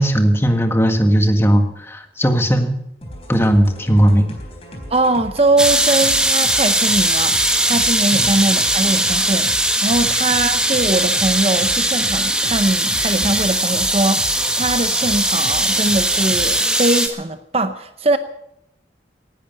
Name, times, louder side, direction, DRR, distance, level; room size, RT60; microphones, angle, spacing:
voice 1, 0.0-2.7 3.3-4.2 8.1-8.4 10.0-10.1, equal, 15° left, 1.6 m, -16 dB
sound 1, 3.0-16.7, equal, 35° left, 3.8 m, -36 dB
voice 2, 4.9-18.2, right 2 dB, 35° right, 0.7 m, -21 dB
sound 2, 5.6-17.1, right 1 dB, 5° right, 1.3 m, -19 dB
18.5 x 11.0 x 6.9 m
head